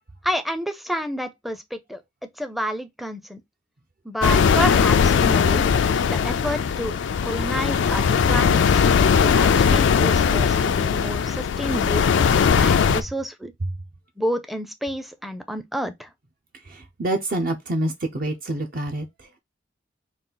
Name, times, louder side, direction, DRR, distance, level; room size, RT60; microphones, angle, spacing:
voice 1, 0.2-2.0 2.4-3.4 4.0-5.7 6.0-7.0 7.2-8.8 9.2-12.0 12.6-13.5 14.2-16.1, equal, ahead, 0.5 m, -29 dB
sound 1, 4.2-13.0, left 6 dB, 85° left, 0.4 m, -19 dB
voice 2, 16.7-19.4, right 1 dB, 50° right, 0.6 m, -27 dB
4.0 x 2.4 x 3.8 m
head